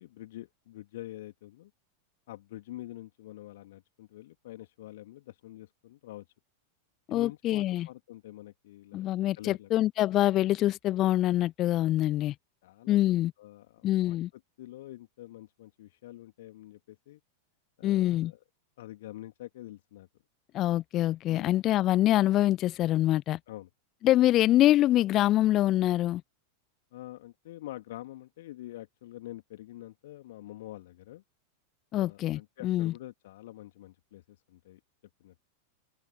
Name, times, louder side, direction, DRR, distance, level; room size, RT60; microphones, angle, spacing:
voice 1, 0.0-1.7 2.3-6.2 7.1-9.0 9.4-9.7 12.6-14.2 14.6-17.2 17.8-18.4 18.8-20.1 21.3-21.5 23.5-23.7 26.9-31.2 31.9-34.8 35.2-35.3, left 15 dB, 55° left, 2.7 m, -46 dB
voice 2, 7.1-7.9 8.9-12.3 12.9-13.3 13.8-14.3 17.8-18.3 20.5-23.4 24.0-26.2 31.9-32.9, left 14 dB, 35° left, 0.7 m, -25 dB
open air
figure-of-eight pair, 90°, 0 cm